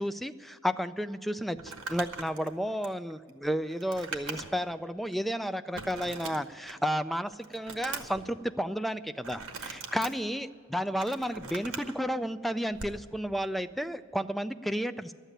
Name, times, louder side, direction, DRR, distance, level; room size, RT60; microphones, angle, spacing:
voice 1, 0.0-15.1, equal, ahead, 10 dB, 0.3 m, -32 dB
Crumpling crinkling, 1.5-4.7 5.1-5.2 5.7-6.9 7.3-8.2 9.2-10.1 10.7-11.9 12.7-13.0, right 4 dB, 85° right, 1.2 m, -41 dB
12.0 x 8.2 x 9.0 m, 2.1 s
head